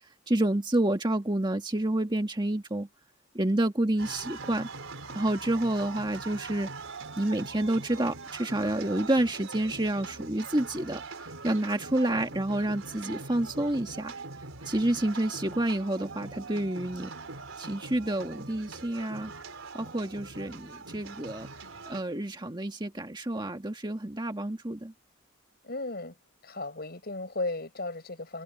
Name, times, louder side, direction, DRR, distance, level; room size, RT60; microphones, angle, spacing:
voice 1, 0.3-2.9 3.3-4.7 5.1-6.7 7.2-14.1 14.6-17.1 17.6-19.3 19.7-21.5 21.8-24.9, right 1 dB, 20° right, 1.7 m, -29 dB
sound 1, 4.0-22.0, right 3 dB, 75° right, 4.2 m, -42 dB
voice 2, 25.6-26.1 26.4-28.4, left 2 dB, 50° left, 6.3 m, -35 dB
head